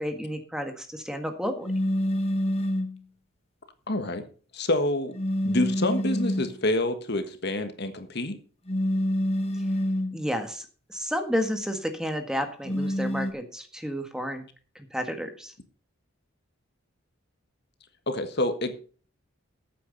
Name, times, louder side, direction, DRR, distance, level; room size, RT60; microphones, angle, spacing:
voice 1, 0.0-1.7 10.1-14.4 14.7-15.5, equal, 5° right, 6 dB, 1.6 m, -31 dB
sound 1, 1.6-3.0 5.1-6.5 8.7-10.2 12.6-13.3, equal, 30° left, 1.6 m, -27 dB
voice 2, 3.9-4.2 4.5-5.1 5.4-8.4 18.1-18.7, left 1 dB, 55° left, 8 dB, 1.5 m, -27 dB
14.0 x 8.9 x 4.1 m, 0.40 s
head